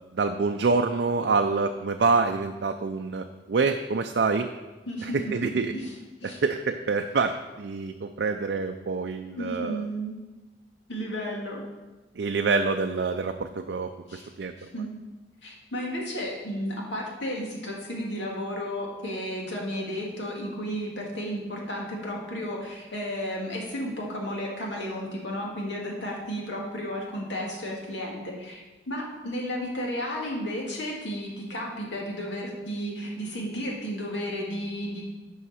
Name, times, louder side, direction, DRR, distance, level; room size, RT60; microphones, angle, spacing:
voice 1, 0.1-4.5 5.0-5.7 6.2-9.8 12.2-14.5, right 4 dB, 65° right, 5 dB, 0.4 m, -26 dB
voice 2, 4.9-5.9 6.2-6.4 9.4-10.2 10.9-11.6 14.1-14.3 14.6-14.9 15.4-35.0, equal, 80° left, -2 dB, 2.2 m, -33 dB
11.0 x 5.6 x 4.3 m, 1.2 s
head